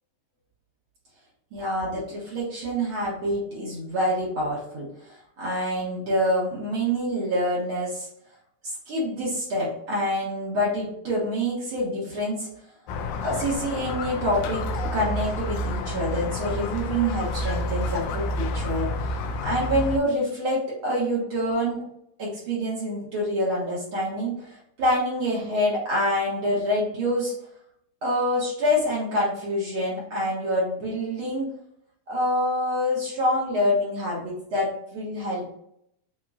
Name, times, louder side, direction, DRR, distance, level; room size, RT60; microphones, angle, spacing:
voice 1, 1.5-4.9 5.4-8.1 8.6-12.5 13.2-14.7 14.9-21.8 22.2-27.3 28.0-31.5 32.1-35.5, equal, 50° right, -6 dB, 2.2 m, -26 dB
Squeak, 12.9-20.0, left 1 dB, 85° left, 2.1 m, -29 dB
7.2 x 2.9 x 2.4 m, 0.73 s
omnidirectional pair, 3.4 m